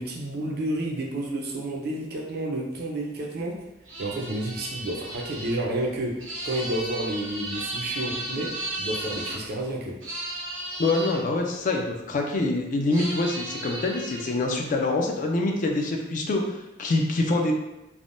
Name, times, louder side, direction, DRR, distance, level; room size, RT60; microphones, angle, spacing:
voice 1, 0.0-3.7 4.0-10.0, right 1 dB, 55° right, 0 dB, 0.5 m, -30 dB
sound 1, 3.9-9.4 10.0-11.2 12.9-14.4, right 1 dB, 75° right, 0.8 m, -34 dB
voice 2, 10.8-17.5, left 2 dB, 40° left, 2 dB, 0.4 m, -25 dB
3.3 x 2.1 x 2.5 m, 0.94 s
head